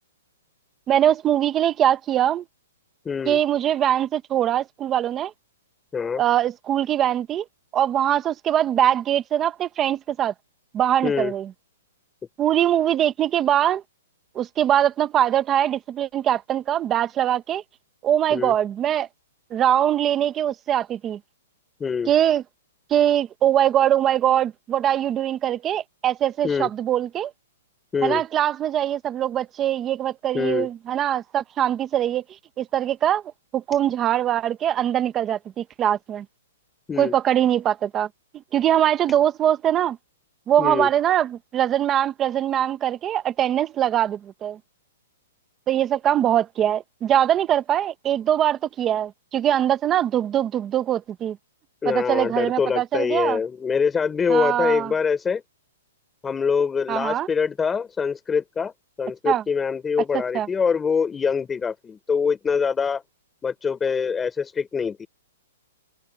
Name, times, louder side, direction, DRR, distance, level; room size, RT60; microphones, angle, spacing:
voice 1, 0.9-2.4 3.3-5.3 6.2-7.4 7.7-10.3 10.7-11.5 12.4-13.8 14.3-17.6 18.0-19.1 19.5-21.2 22.1-22.4 22.9-27.3 28.0-32.2 32.6-33.2 33.5-36.2 37.0-38.1 38.5-40.0 40.5-44.6 45.7-51.4 51.9-53.4 54.3-54.9 56.9-57.3 59.3-59.4 60.3-60.5, right 11 dB, 15° right, 0.8 m, -22 dB
voice 2, 3.0-3.4 5.9-6.2 11.0-11.3 18.3-18.5 21.8-22.1 26.4-26.7 27.9-28.2 30.3-30.7 36.9-37.2 40.6-40.9 51.8-55.4 56.2-58.7 59.0-63.0 63.4-65.1, left 6 dB, 10° left, 4.5 m, -24 dB
hypercardioid pair, 175°, 0 cm